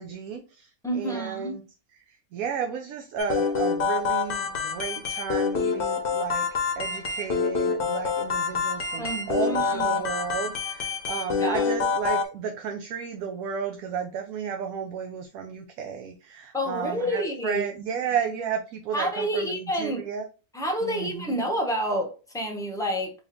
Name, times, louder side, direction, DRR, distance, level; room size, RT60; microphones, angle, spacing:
voice 1, 0.0-1.6 2.1-6.5 6.7-20.2 20.8-21.4, right 7 dB, 75° right, 1.0 m, -33 dB
voice 2, 0.8-1.6 9.0-10.0 11.4-11.7 16.5-17.6 18.9-20.0 20.5-23.1, equal, 5° left, 0.5 m, -29 dB
sound 1, 3.2-12.2, left 5 dB, 50° left, 0.8 m, -27 dB
3.1 x 3.0 x 3.6 m
omnidirectional pair, 1.6 m